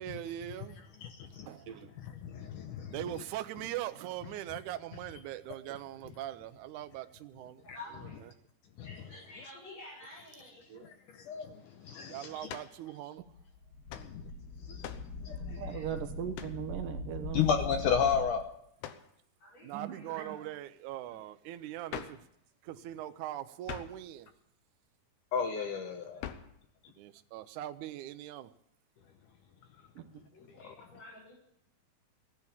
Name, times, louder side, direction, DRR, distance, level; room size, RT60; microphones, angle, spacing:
voice 1, 0.0-0.8 1.3-1.9 2.9-7.6 8.2-8.3 12.1-13.2 19.6-22.2 22.6-24.3 26.9-28.5, right 13 dB, 85° right, 1.7 m, -41 dB
voice 2, 1.0-1.6 2.0-3.0 8.8-8.9 10.8-12.5 13.9-14.3 14.6-15.6 17.3-18.4 25.3-26.3 29.8-29.9 30.5-30.7, left 7 dB, 70° left, 2.1 m, -33 dB
voice 3, 7.6-8.1 8.8-10.7 15.3-15.8 19.4-20.5 30.2-31.3, left 2 dB, 40° left, 7.0 m, -51 dB
sound 1, 12.5-12.8 13.9-14.1 14.8-15.1 16.3-16.6 18.8-19.1 21.9-22.3 23.7-24.0 26.2-26.6, left 10 dB, 85° left, 2.9 m, -43 dB
sound 2, 13.2-18.2, left 2 dB, 25° left, 3.2 m, -41 dB
voice 4, 15.6-17.5 19.7-20.3 30.0-30.1, right 9 dB, 65° right, 2.5 m, -39 dB
16.5 x 11.0 x 7.2 m
omnidirectional pair, 4.5 m